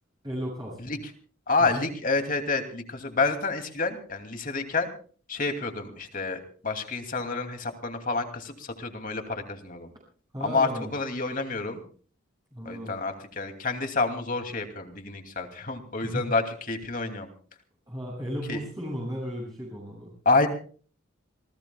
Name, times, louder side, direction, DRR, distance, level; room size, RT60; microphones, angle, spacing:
voice 1, 0.2-0.9 1.6-1.9 10.3-10.9 12.5-12.9 16.0-16.3 17.9-20.1, equal, 20° right, -4 dB, 7.3 m, -35 dB
voice 2, 1.5-4.9 5.3-9.9 10.4-11.8 12.6-17.3 18.5-18.6 20.2-20.5, left 3 dB, 40° left, 6 dB, 2.7 m, -28 dB
28.0 x 19.0 x 2.3 m, 0.43 s
head